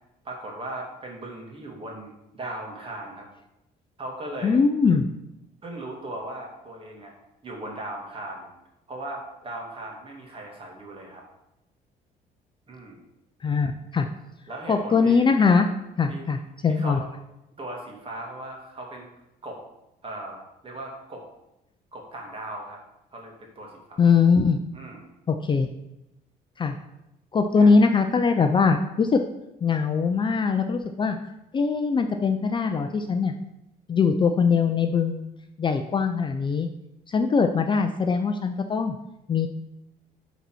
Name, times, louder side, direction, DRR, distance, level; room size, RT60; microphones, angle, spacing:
voice 1, 0.2-3.3 4.0-4.6 5.6-7.1 7.4-8.5 8.9-11.3 12.7-13.0 14.5-15.3 16.1-16.3 16.7-17.0 17.6-19.1 19.4-19.6 20.0-21.2 21.9-22.8 23.1-24.0 24.7-25.1 27.6-27.7, right 1 dB, 30° right, 0 dB, 2.3 m, -38 dB
voice 2, 4.4-5.1 13.4-14.1 14.7-15.7 16.0-17.0 24.0-24.6 25.3-25.7 26.6-26.8 27.3-29.2 29.6-31.2 31.5-33.3 33.9-35.3 35.6-36.7 37.1-39.0 39.3-39.5, left 5 dB, 30° left, 6 dB, 0.5 m, -21 dB
8.3 x 4.1 x 6.2 m, 0.90 s
cardioid pair, 110°, 17 cm